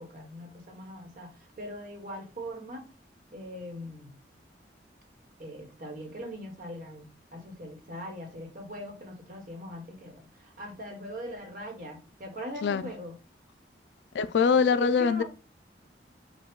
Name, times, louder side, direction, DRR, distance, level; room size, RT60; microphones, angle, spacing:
voice 1, 0.0-2.8 3.3-4.2 5.4-13.1 14.5-15.2, equal, 50° right, 1.4 m, -41 dB
voice 2, 14.1-15.2, left 5 dB, 75° left, 0.3 m, -23 dB
5.2 x 2.4 x 3.6 m
head